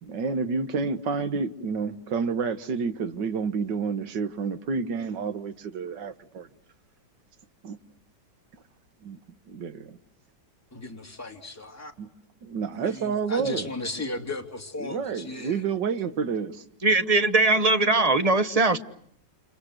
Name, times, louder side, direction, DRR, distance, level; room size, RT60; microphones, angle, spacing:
voice 1, 0.0-6.5 7.6-7.8 9.0-9.2 9.5-10.0 12.0-12.1 12.4-13.7 14.8-16.6, right 5 dB, 90° right, 2.0 m, -29 dB
voice 2, 10.7-11.9 12.7-15.7, left 2 dB, 10° left, 2.8 m, -36 dB
voice 3, 16.8-18.8, right 3 dB, 25° right, 1.1 m, -20 dB
30.0 x 28.5 x 6.6 m
omnidirectional pair, 1.9 m